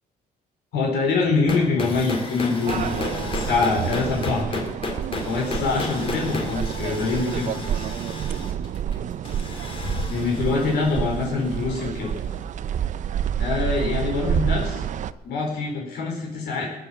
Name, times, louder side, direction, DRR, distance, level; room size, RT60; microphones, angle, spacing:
voice 1, 0.7-4.6 5.2-7.9 10.1-12.1 13.4-14.8 15.2-16.6, left 4 dB, 75° left, -1 dB, 4.7 m, -24 dB
sound 1, 1.3-12.1, left 3 dB, 30° left, 2.9 m, -33 dB
sound 2, 2.7-15.1, right 9 dB, 45° right, 0.5 m, -29 dB
19.5 x 8.2 x 7.5 m, 1.1 s
cardioid pair, 110°, 17 cm